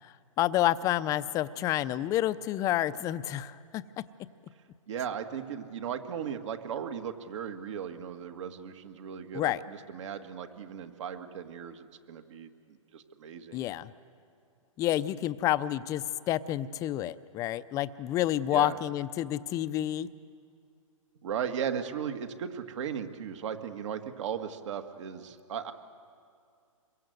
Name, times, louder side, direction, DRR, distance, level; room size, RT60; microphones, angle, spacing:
voice 1, 0.4-3.8 9.3-9.6 13.5-13.9 14.8-20.1, left 13 dB, 20° left, 14 dB, 0.6 m, -29 dB
voice 2, 4.9-13.7 18.5-18.8 21.2-25.7, right 8 dB, 60° right, 7 dB, 2.0 m, -37 dB
27.5 x 23.0 x 8.0 m, 2.3 s
hypercardioid pair, 145°, 18 cm